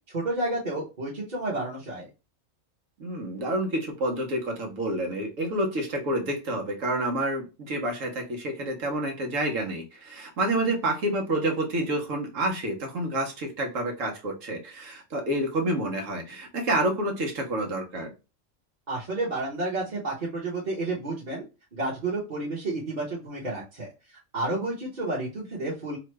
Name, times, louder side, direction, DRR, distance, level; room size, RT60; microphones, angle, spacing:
voice 1, 0.1-2.1 18.9-21.4 21.7-23.9 24.3-26.0, right 2 dB, 40° right, 1.0 m, -30 dB
voice 2, 3.0-18.1, right 1 dB, 85° right, 1.3 m, -28 dB
3.1 x 2.2 x 3.1 m
omnidirectional pair, 1.3 m